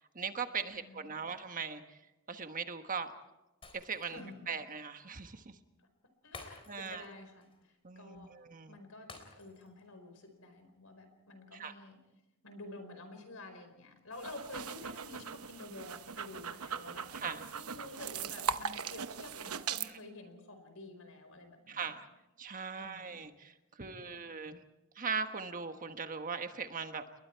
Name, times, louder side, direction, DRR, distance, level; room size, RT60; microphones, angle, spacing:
voice 1, 0.1-2.0 2.3-3.1 3.7-4.2 4.5-5.6 6.7-7.0 7.8-8.8 11.5-11.7 17.1-17.4 21.7-22.1 22.4-24.6 24.9-27.0, right 5 dB, 40° right, 7 dB, 1.3 m, -39 dB
voice 2, 0.7-1.4 4.1-4.5 5.8-5.9 6.2-8.3 8.7-12.0 12.4-17.1 17.5-21.9 22.8-23.3 23.9-24.4, left 2 dB, 70° left, 8 dB, 4.6 m, -50 dB
Shatter, 3.6-4.3 4.7-4.8 6.3-7.1 7.4-7.6 9.1-9.8 10.2-10.3, left 3 dB, 25° left, 3.7 m, -51 dB
sound 1, 14.1-19.9, right 6 dB, 80° right, 0.9 m, -40 dB
29.5 x 21.5 x 4.6 m, 0.97 s
head